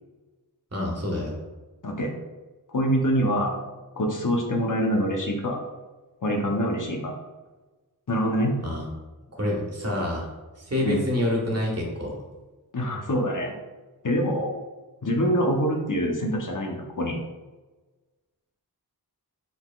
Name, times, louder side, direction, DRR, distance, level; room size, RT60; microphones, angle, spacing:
voice 1, 0.7-1.3 8.6-8.9 9.3-10.3 10.6-12.2, left 1 dB, 40° right, -2 dB, 1.4 m, -27 dB
voice 2, 2.7-3.6 4.0-5.6 6.2-7.1 8.1-8.5 10.8-11.0 12.7-13.5 14.0-14.5 15.0-17.2, equal, 50° left, 1 dB, 0.8 m, -25 dB
5.3 x 3.8 x 2.4 m, 1.2 s
wide cardioid pair, 55°, 39 cm